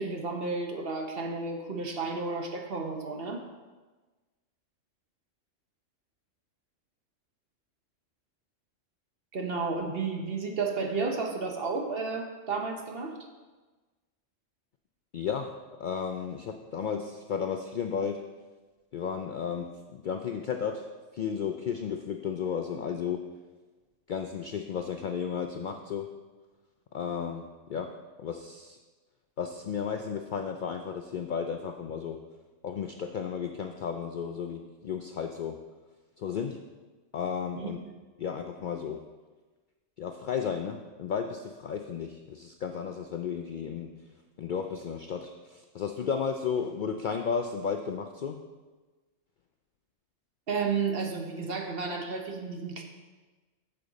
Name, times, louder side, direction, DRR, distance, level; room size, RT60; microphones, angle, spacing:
voice 1, 0.0-3.4 9.3-13.1 37.6-37.7 50.5-52.8, right 4 dB, 50° right, 2 dB, 1.1 m, -32 dB
voice 2, 15.1-15.5 15.8-18.2 18.9-20.9 21.1-23.3 24.1-26.1 26.9-27.9 28.2-28.8 29.4-32.2 32.6-35.6 36.2-36.6 37.1-37.8 38.2-39.0 40.0-43.9 44.4-48.4, left 7 dB, 65° left, 5 dB, 0.5 m, -33 dB
8.5 x 6.9 x 4.0 m, 1.3 s
omnidirectional pair, 1.3 m